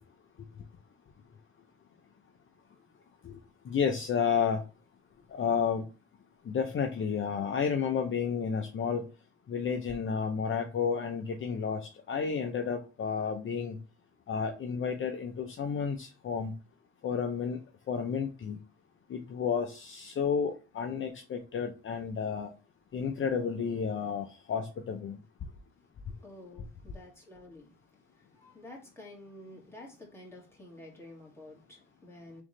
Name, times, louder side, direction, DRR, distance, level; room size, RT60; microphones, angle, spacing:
voice 1, 3.7-4.6 5.3-5.8 6.5-9.0 9.5-11.8 12.1-13.8 14.3-16.5 17.0-17.6 17.9-18.6 19.1-22.5 22.9-25.2, left 6 dB, 40° left, 0.6 m, -31 dB
voice 2, 26.2-32.4, left 1 dB, 10° left, 2.0 m, -50 dB
3.7 x 3.5 x 3.1 m
cardioid pair, 90°, 30 cm